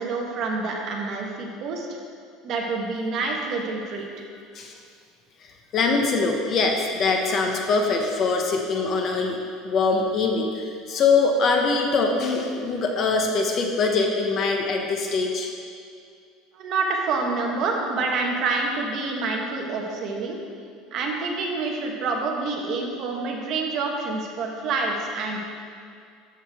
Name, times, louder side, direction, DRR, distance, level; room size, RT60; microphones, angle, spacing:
voice 1, 0.0-2.0 2.4-4.3 16.5-20.4 20.9-25.4, right 3 dB, 35° right, 0 dB, 1.1 m, -27 dB
voice 2, 5.7-9.4 9.6-15.5, left 4 dB, 30° left, 2 dB, 0.7 m, -23 dB
13.5 x 6.4 x 3.5 m, 2.3 s
cardioid pair, 180°, 0 cm